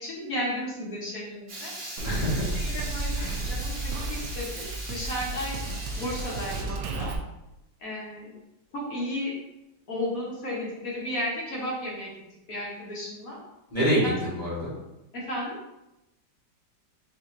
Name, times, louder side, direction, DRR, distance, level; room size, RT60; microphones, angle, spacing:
voice 1, 0.0-1.7 2.5-7.1 7.8-8.3 8.7-9.3 9.9-12.1 12.5-13.4 14.0-14.1 15.1-15.6, left 1 dB, 55° left, -5 dB, 1.2 m, -34 dB
Water tap faucet / Liquid, 1.5-6.6, right 1 dB, 35° right, 0.9 m, -39 dB
voice 2, 2.0-2.6 3.2-3.4 13.7-14.7, equal, 30° left, -8 dB, 1.0 m, -27 dB
Drum kit, 2.0-7.2, right 2 dB, 75° right, 0.8 m, -33 dB
5.3 x 2.8 x 2.5 m, 0.93 s
omnidirectional pair, 2.0 m